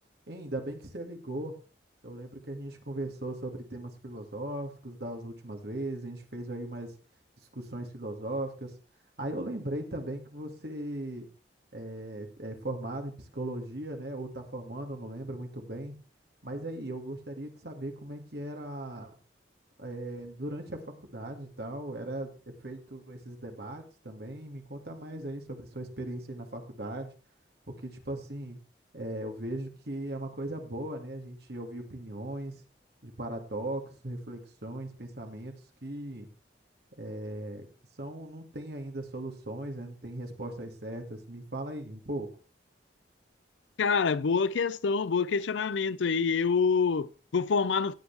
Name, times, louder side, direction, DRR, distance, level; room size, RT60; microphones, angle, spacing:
voice 1, 0.3-1.5 2.0-6.9 7.5-8.7 9.2-11.3 11.7-16.0 16.4-19.1 19.8-22.3 22.6-27.1 27.7-28.6 28.9-32.6 33.0-35.5 35.8-36.3 37.0-37.7 38.0-42.3, right 1 dB, 60° right, 2.1 m, -38 dB
voice 2, 43.8-47.9, left 5 dB, 90° left, 0.5 m, -26 dB
16.5 x 8.0 x 3.3 m
head